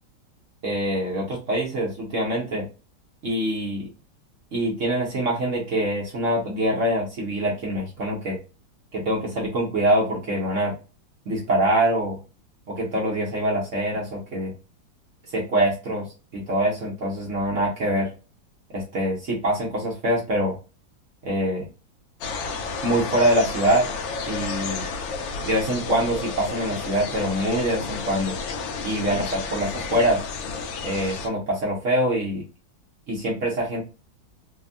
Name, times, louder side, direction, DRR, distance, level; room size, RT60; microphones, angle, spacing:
voice 1, 0.6-2.6 3.2-3.9 4.5-8.4 8.9-10.7 11.3-12.2 12.7-14.5 15.3-16.1 16.3-18.1 18.7-20.5 21.2-21.7 22.8-23.9 24.3-24.9 25.4-28.3 28.8-30.2 30.8-32.4 33.1-33.8, right 1 dB, 60° right, -3 dB, 0.8 m, -24 dB
sound 1, 22.2-31.3, left 4 dB, 85° left, 1.3 m, -31 dB
3.4 x 2.1 x 2.4 m, 0.33 s
omnidirectional pair, 2.0 m